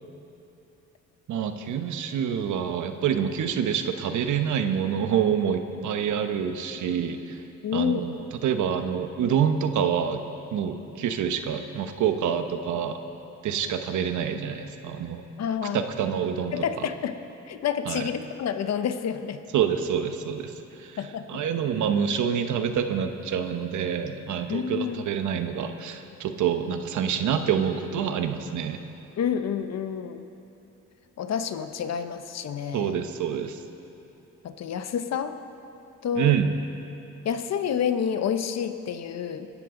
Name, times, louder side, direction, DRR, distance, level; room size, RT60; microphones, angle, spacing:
voice 1, 1.3-7.4 7.7-10.2 10.5-13.0 13.4-15.2 15.7-16.6 17.9-18.1 19.5-20.5 20.8-21.0 21.3-28.8 32.7-33.6 36.2-36.5, right 8 dB, 75° right, 7 dB, 1.1 m, -27 dB
voice 2, 7.6-8.0 15.4-15.8 16.5-17.1 17.5-19.4 21.0-21.4 24.5-25.0 29.2-30.3 31.2-33.0 34.4-35.3 36.0-36.4 37.2-39.5, left 8 dB, 60° left, 9 dB, 0.9 m, -29 dB
23.5 x 12.0 x 3.9 m, 3.0 s
cardioid pair, 90°, 30 cm